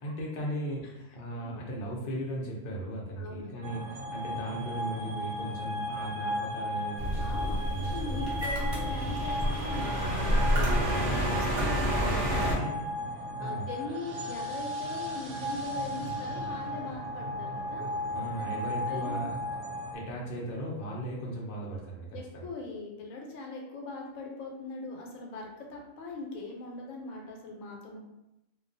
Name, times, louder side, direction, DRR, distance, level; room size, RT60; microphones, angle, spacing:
voice 1, 0.0-8.2 10.5-11.3 12.4-12.7 13.4-13.7 18.1-19.3 19.9-22.5, right 1 dB, 55° left, -3 dB, 0.6 m, -37 dB
voice 2, 3.2-3.6 7.2-10.5 10.9-12.7 13.4-17.9 18.4-18.5 18.9-19.2 22.1-28.0, left 3 dB, 85° left, 0 dB, 1.0 m, -41 dB
sound 1, 3.6-20.0, equal, 90° right, 1.0 m, -36 dB
sound 2, 7.0-12.5, equal, 55° right, 0.7 m, -29 dB
2.3 x 2.2 x 2.5 m, 0.92 s
omnidirectional pair, 1.4 m